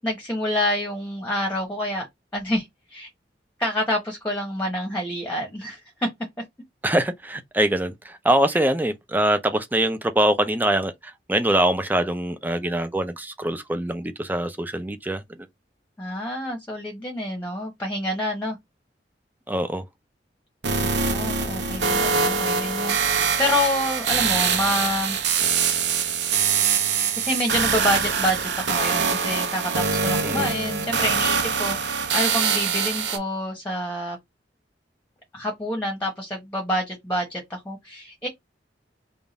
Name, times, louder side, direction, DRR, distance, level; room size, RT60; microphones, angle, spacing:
voice 1, 0.0-2.1 2.3-3.1 3.6-6.1 16.0-18.6 20.8-25.2 27.2-34.2 35.3-38.3, left 1 dB, 10° left, 1.0 m, -27 dB
voice 2, 6.8-10.9 11.3-15.2 19.5-19.8 30.2-30.5, right 1 dB, 10° right, 0.5 m, -23 dB
sound 1, 20.6-33.2, right 6 dB, 75° right, 0.8 m, -23 dB
3.6 x 2.4 x 3.9 m
head